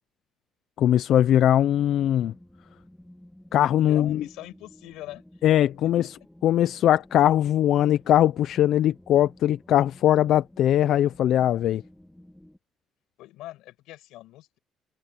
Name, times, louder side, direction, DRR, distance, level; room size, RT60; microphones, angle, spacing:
voice 1, 0.8-2.3 3.5-4.2 5.4-6.2 6.4-11.8, left 11 dB, 60° left, 0.5 m, -21 dB
sound 1, 1.3-12.6, left 1 dB, 5° left, 3.6 m, -52 dB
voice 2, 3.8-5.2 5.8-5.9 13.2-14.6, left 16 dB, 85° left, 8.0 m, -42 dB
cardioid pair, 145°, 0 cm